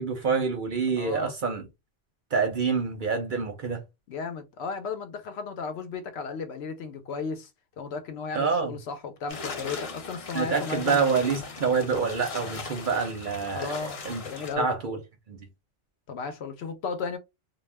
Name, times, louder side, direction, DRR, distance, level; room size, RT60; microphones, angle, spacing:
voice 1, 0.0-1.6 2.3-3.8 8.3-8.7 10.3-14.2 14.6-15.0 15.3-15.5, right 5 dB, 55° right, 0.6 m, -27 dB
voice 2, 1.0-1.4 4.1-7.5 7.8-11.1 13.5-14.7 16.1-17.2, left 5 dB, 70° left, 0.8 m, -35 dB
sound 1, 9.3-14.5, left 4 dB, 45° left, 0.5 m, -38 dB
2.3 x 2.1 x 3.2 m
omnidirectional pair, 1.2 m